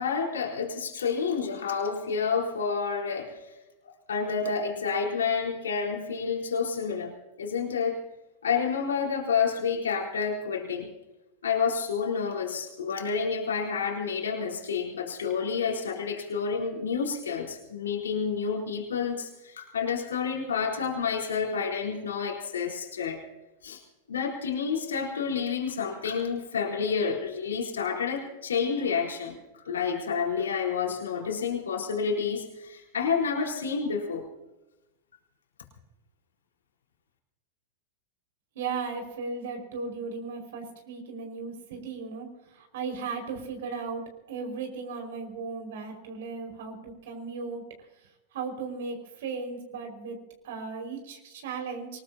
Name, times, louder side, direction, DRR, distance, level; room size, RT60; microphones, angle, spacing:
voice 1, 0.0-3.5 3.8-8.0 8.4-10.9 11.4-23.2 23.6-23.8 24.1-34.3, left 6 dB, 90° left, -2 dB, 4.4 m, -29 dB
voice 2, 38.6-42.3 42.6-44.0 44.3-47.6 48.3-51.9, right 4 dB, 70° right, 4 dB, 5.3 m, -36 dB
24.0 x 20.5 x 2.9 m, 1.0 s
hypercardioid pair, 110°, 0 cm